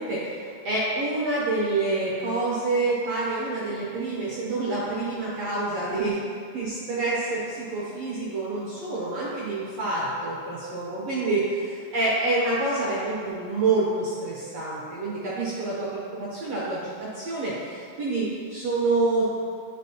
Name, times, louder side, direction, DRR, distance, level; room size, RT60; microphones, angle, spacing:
voice 1, 0.0-6.3 6.5-19.2, right 2 dB, 60° right, -7 dB, 2.0 m, -27 dB
10.0 x 5.2 x 3.0 m, 2.2 s
omnidirectional pair, 3.7 m